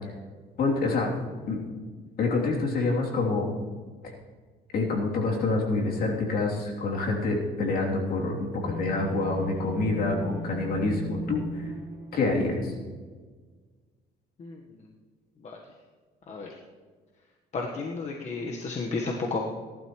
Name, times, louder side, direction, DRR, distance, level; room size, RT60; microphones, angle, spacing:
voice 1, 0.6-1.1 1.5-1.6 2.2-3.5 4.7-11.7 12.1-12.7, left 3 dB, 65° left, -1 dB, 3.1 m, -27 dB
sound 1, 8.6-12.9, right 1 dB, 15° right, 1.8 m, -38 dB
voice 2, 17.5-19.5, left 3 dB, 45° left, 0 dB, 1.3 m, -32 dB
18.5 x 12.0 x 3.1 m, 1.5 s
cardioid pair, 110°, 17 cm